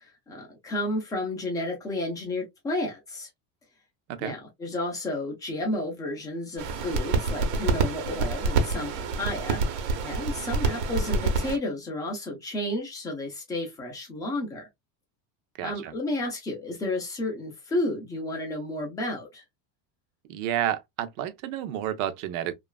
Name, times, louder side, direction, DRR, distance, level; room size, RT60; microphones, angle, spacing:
voice 1, 0.0-3.3 4.2-9.6 10.0-14.6 15.6-19.4, left 1 dB, 10° left, 0.4 m, -32 dB
sound 1, 6.6-11.6, right 3 dB, 85° right, 1.0 m, -27 dB
voice 2, 15.6-15.9 20.3-22.5, right 11 dB, 60° right, 0.6 m, -30 dB
2.9 x 2.4 x 2.2 m
cardioid pair, 170°, 48 cm